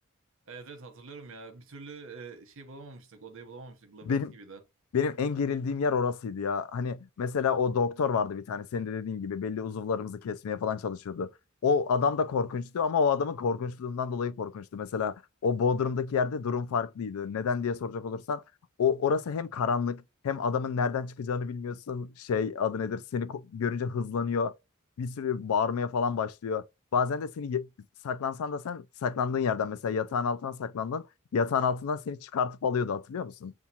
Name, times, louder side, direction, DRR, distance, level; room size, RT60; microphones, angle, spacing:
voice 1, 0.5-4.6, right 4 dB, 65° right, 0.9 m, -46 dB
voice 2, 4.9-11.3 11.6-18.4 18.8-24.5 25.0-26.6 26.9-27.7 28.0-31.1 31.3-33.5, left 6 dB, 70° left, 0.4 m, -29 dB
7.0 x 2.4 x 2.8 m
head